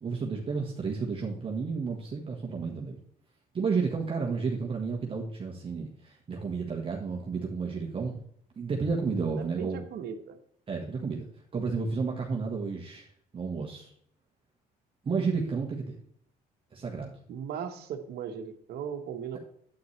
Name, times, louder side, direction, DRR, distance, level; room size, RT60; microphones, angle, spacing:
voice 1, 0.0-3.0 3.5-8.2 8.6-9.8 10.7-11.3 11.5-13.1 13.3-13.9 15.0-16.0 16.7-17.1, right 5 dB, 30° right, 0 dB, 1.3 m, -31 dB
voice 2, 9.4-10.4 17.3-19.4, right 7 dB, 70° right, 7 dB, 1.2 m, -37 dB
9.3 x 8.5 x 3.2 m, 0.67 s
cardioid pair, 110°, 17 cm